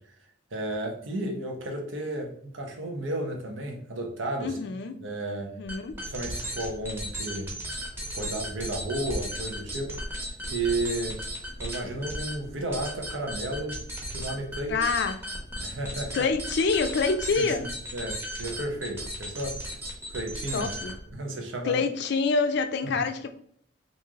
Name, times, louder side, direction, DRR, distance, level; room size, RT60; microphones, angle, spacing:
voice 1, 0.5-4.6 5.0-5.5 6.1-7.5 8.1-9.9 10.5-11.2 11.6-13.8 14.1-14.9 15.6-16.3 17.4-19.6 20.1-20.7 21.1-21.9 22.8-23.0, right 1 dB, 85° right, 2 dB, 0.9 m, -33 dB
voice 2, 4.4-4.9 5.4-6.0 14.7-15.2 16.1-17.7 20.5-21.0 21.6-23.3, left 4 dB, 60° left, 8 dB, 0.4 m, -26 dB
sound 1, 5.7-21.1, equal, 15° right, 0.8 m, -36 dB
3.1 x 2.6 x 3.6 m, 0.64 s
head